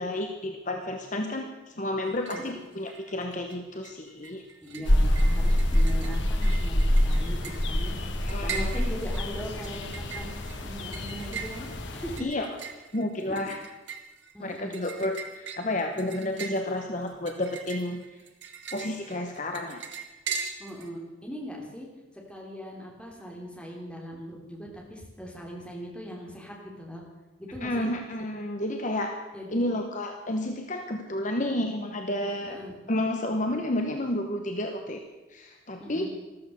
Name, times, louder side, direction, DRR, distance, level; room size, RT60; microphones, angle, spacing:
voice 1, 0.0-4.4 8.2-8.8 12.2-12.5 12.9-13.6 14.4-18.0 18.7-19.8 27.6-29.1 29.5-32.6 32.9-35.0 35.3-36.1, left 1 dB, 40° left, 4 dB, 1.0 m, -31 dB
sound 1, 2.0-2.6 2.9-3.6 3.8-20.9, right 6 dB, 60° right, 1.6 m, -41 dB
voice 2, 4.6-7.9 8.2-12.3 13.4-13.5 14.3-14.8 20.6-21.9 22.3-27.0 27.4-27.9 29.3-29.7 32.5-32.7 35.8-36.1, equal, 5° left, -2 dB, 3.0 m, -40 dB
sound 2, 4.8-12.2, equal, 60° left, 1.5 m, -26 dB
13.5 x 13.5 x 6.8 m, 1.1 s
head